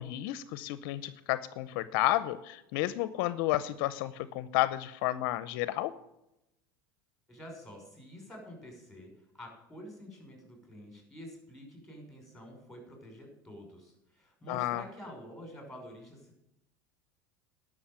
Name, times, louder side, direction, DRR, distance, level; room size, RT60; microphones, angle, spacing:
voice 1, 0.0-5.9 14.5-14.8, left 15 dB, 65° left, 15 dB, 0.7 m, -31 dB
voice 2, 7.3-16.4, equal, 5° left, 2 dB, 5.7 m, -48 dB
11.5 x 6.4 x 9.0 m, 0.86 s
supercardioid pair, 100°, 12 cm